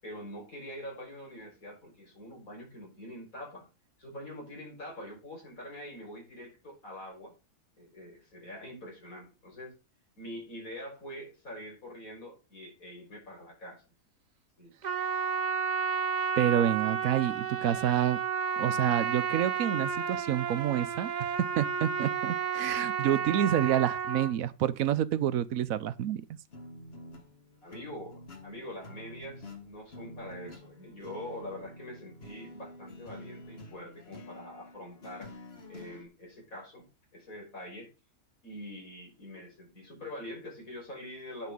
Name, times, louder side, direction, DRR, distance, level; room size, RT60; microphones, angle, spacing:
voice 1, 0.0-3.7 4.0-7.3 7.8-9.7 10.2-13.8 14.6-14.7 27.6-35.3 35.7-36.9 37.1-37.9 38.4-41.5, left 1 dB, 60° left, 5.9 m, -44 dB
Trumpet, 14.8-24.3, right 6 dB, 50° right, 0.5 m, -32 dB
voice 2, 16.4-18.2 18.6-21.3 21.6-26.2, right 11 dB, 70° right, 1.0 m, -28 dB
sound 1, 26.5-36.0, left 1 dB, 40° left, 1.7 m, -48 dB
9.7 x 5.9 x 5.3 m
omnidirectional pair, 1.7 m